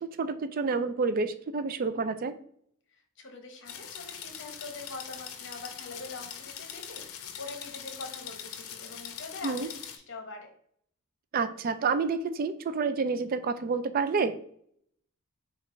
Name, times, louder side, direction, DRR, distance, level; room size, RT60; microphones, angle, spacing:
voice 1, 0.0-2.4 9.4-9.7 11.3-14.4, right 4 dB, 45° right, 11 dB, 0.4 m, -29 dB
voice 2, 2.9-9.5 9.9-10.5, left 3 dB, 60° left, 4 dB, 1.0 m, -44 dB
sound 1, 3.6-10.0, left 8 dB, 85° left, 0.6 m, -42 dB
6.6 x 2.5 x 3.1 m, 0.63 s
head